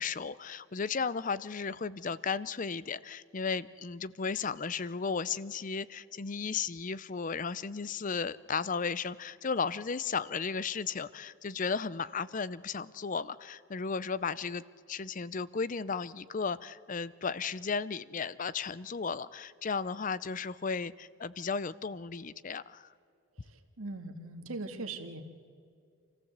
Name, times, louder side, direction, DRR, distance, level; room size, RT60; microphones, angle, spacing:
voice 1, 0.0-14.6 14.9-22.9, left 5 dB, 40° left, 18 dB, 0.5 m, -35 dB
voice 2, 23.8-25.2, right 2 dB, 85° right, 7 dB, 1.9 m, -39 dB
27.5 x 15.0 x 8.1 m, 2.4 s
head